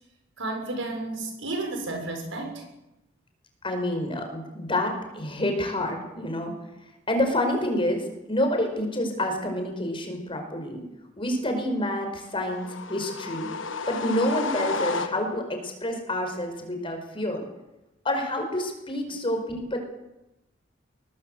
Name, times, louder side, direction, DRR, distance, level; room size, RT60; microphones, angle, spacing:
voice 1, 0.4-2.6, right 2 dB, 80° right, 3 dB, 6.3 m, -32 dB
voice 2, 3.6-6.5 7.1-10.8 11.2-13.5 13.9-17.4 18.0-19.8, left 1 dB, 30° left, 4 dB, 5.2 m, -28 dB
sound 1, 12.4-15.6, left 4 dB, 90° left, 1.4 m, -32 dB
22.5 x 19.0 x 8.1 m, 0.96 s
head